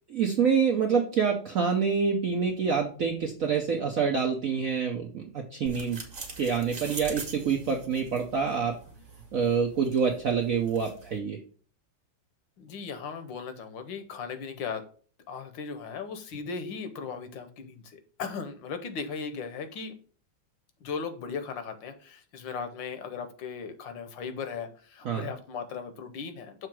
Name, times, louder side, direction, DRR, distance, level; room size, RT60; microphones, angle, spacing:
voice 1, 0.1-6.0 6.4-8.8 9.3-11.4 25.0-25.3, right 6 dB, 65° right, 2 dB, 0.8 m, -26 dB
sound 1, 5.7-11.2, right 3 dB, 35° right, 1.4 m, -43 dB
voice 2, 12.6-14.9 15.3-19.9 20.8-26.7, left 5 dB, 70° left, 8 dB, 1.4 m, -37 dB
6.7 x 3.1 x 5.9 m, 0.42 s
omnidirectional pair, 2.3 m